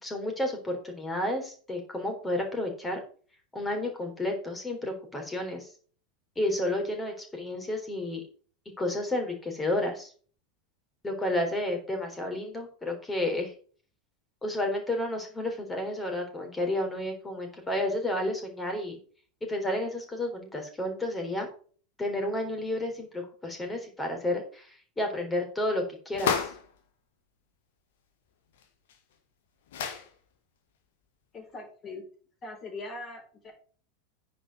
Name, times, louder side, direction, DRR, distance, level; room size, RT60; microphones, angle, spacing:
voice 1, 0.0-3.0 3.5-5.7 6.4-8.2 8.8-10.1 11.0-13.5 14.4-19.0 19.5-21.5 22.0-26.4, left 1 dB, 15° left, 3 dB, 3.7 m, -31 dB
sound 1, 26.1-26.7 28.6-28.7 28.9-29.0 29.7-30.1, left 7 dB, 65° left, 1.8 m, -30 dB
voice 2, 31.3-32.1 32.4-33.5, left 2 dB, 30° left, 3 dB, 4.1 m, -41 dB
9.8 x 5.2 x 6.1 m, 0.42 s
figure-of-eight pair, 85°, 0 cm